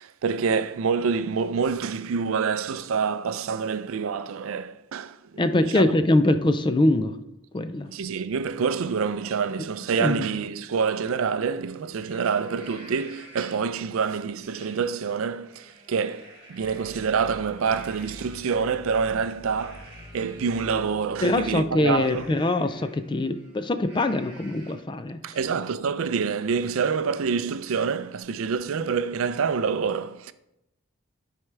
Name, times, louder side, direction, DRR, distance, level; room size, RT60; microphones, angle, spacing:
voice 1, 0.0-6.0 7.9-22.3 25.2-30.3, right 6 dB, 70° right, 0.4 m, -27 dB
voice 2, 5.4-7.1 7.5-7.9 10.0-10.2 21.2-25.2, left 2 dB, 20° left, 0.3 m, -23 dB
Livestock farm animals working animals, 11.2-11.3 11.7-13.8 14.4-14.8 15.2-20.8 21.9-25.0 25.4-25.5 25.8-28.2, right 1 dB, 25° right, 2.0 m, -51 dB
sound 1, 16.6-22.2, left 1 dB, 55° left, 0.7 m, -46 dB
11.0 x 4.6 x 3.3 m
head